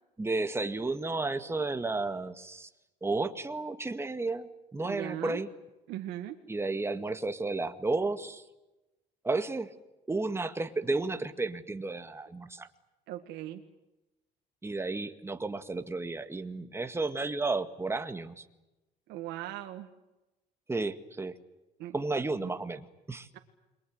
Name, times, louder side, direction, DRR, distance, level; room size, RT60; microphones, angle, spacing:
voice 1, 0.2-2.7 3.0-5.5 6.5-8.4 9.2-9.7 10.1-12.7 14.6-18.4 20.7-21.3 21.9-23.3, right 3 dB, 15° right, 9 dB, 2.0 m, -32 dB
voice 2, 4.8-5.4 5.9-6.3 13.1-13.6 19.1-19.9 21.8-21.9 22.4-22.5 23.3-23.4, right 13 dB, 85° right, 4 dB, 1.8 m, -39 dB
29.0 x 23.0 x 8.0 m, 1.0 s
cardioid pair, 110°, 17 cm